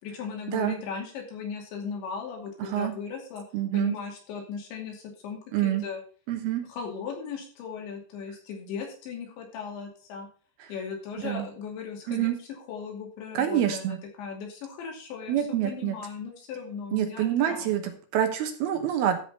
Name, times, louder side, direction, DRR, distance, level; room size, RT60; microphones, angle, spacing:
voice 1, 0.0-3.4 3.7-6.0 6.7-10.3 10.7-18.0, left 6 dB, 90° left, 1 dB, 4.9 m, -37 dB
voice 2, 2.6-2.9 3.5-4.0 5.5-5.8 6.3-6.6 10.6-10.7 11.2-11.5 12.1-12.4 13.3-14.0 15.3-16.0 16.9-19.2, right 11 dB, 70° right, 6 dB, 2.8 m, -27 dB
13.0 x 5.1 x 5.6 m, 0.41 s
omnidirectional pair, 5.0 m